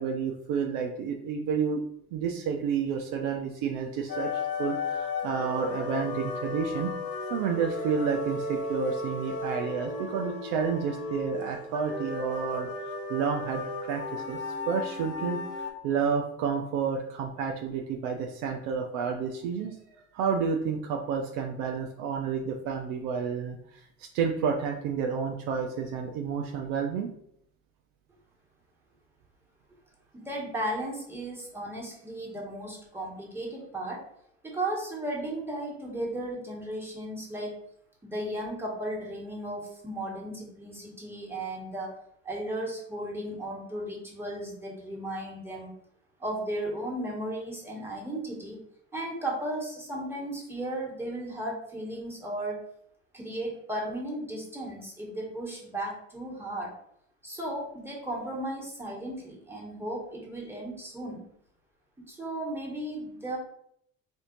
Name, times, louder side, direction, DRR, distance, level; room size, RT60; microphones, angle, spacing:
voice 1, 0.0-1.8 2.1-6.9 7.3-19.8 20.1-27.1, right 6 dB, 60° right, 3 dB, 0.5 m, -30 dB
sound 1, 4.1-15.7, left 3 dB, 30° left, 1.1 m, -35 dB
voice 2, 30.1-34.0 34.4-37.6 38.0-42.0 42.2-45.7 46.2-48.6 48.9-52.6 53.1-56.7 57.2-61.2 62.1-63.4, right 1 dB, 5° right, -4 dB, 1.5 m, -35 dB
4.3 x 2.6 x 2.6 m, 0.69 s
figure-of-eight pair, 60°, 39 cm